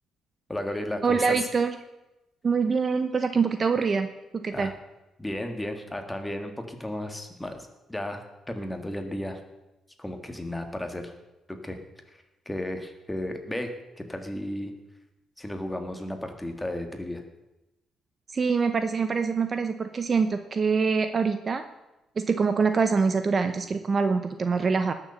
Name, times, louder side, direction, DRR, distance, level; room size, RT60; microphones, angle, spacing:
voice 1, 0.5-1.5 4.5-4.7 5.2-9.4 10.0-11.1 11.5-11.8 12.4-13.7 14.0-14.7 15.4-17.2, left 1 dB, 10° left, 5 dB, 1.7 m, -34 dB
voice 2, 1.0-1.7 2.4-4.1 4.3-4.7 18.3-21.6 22.2-24.9, right 5 dB, 30° right, 9 dB, 0.7 m, -24 dB
19.5 x 6.9 x 7.0 m, 0.98 s
cardioid pair, 140°, 0 cm